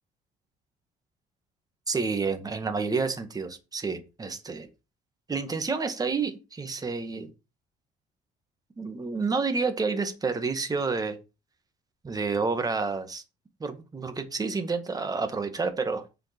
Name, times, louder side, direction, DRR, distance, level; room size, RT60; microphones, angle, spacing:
voice 1, 1.9-4.7 5.3-7.3 8.8-11.2 12.0-13.2 13.6-16.0, right 4 dB, 20° right, 1.8 m, -29 dB
7.6 x 5.1 x 6.6 m
cardioid pair, 110°, 17 cm